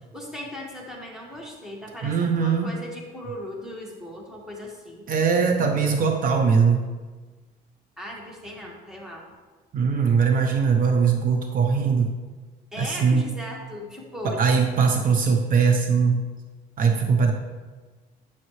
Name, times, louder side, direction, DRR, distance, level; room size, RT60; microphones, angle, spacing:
voice 1, 0.0-5.1 8.0-9.2 12.7-14.5, left 1 dB, 5° right, -2 dB, 1.6 m, -38 dB
voice 2, 2.0-2.7 5.1-6.9 9.7-12.1 12.8-13.2 14.2-16.2 16.8-17.3, right 5 dB, 55° right, 3 dB, 0.8 m, -21 dB
8.7 x 6.4 x 3.2 m, 1.3 s
cardioid pair, 110°, 17 cm